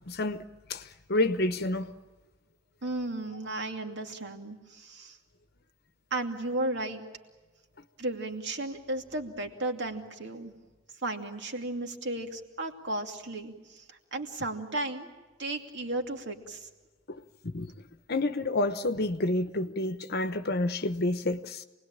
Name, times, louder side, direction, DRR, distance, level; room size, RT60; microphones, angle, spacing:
voice 1, 0.1-0.4 0.7-1.9 17.1-17.2 17.4-17.7 18.1-21.6, left 2 dB, 50° left, 1.0 m, -29 dB
voice 2, 2.8-5.2 6.1-7.1 8.0-10.5 11.0-15.1 15.4-16.7, right 2 dB, 60° right, 2.7 m, -34 dB
28.5 x 20.5 x 8.9 m
head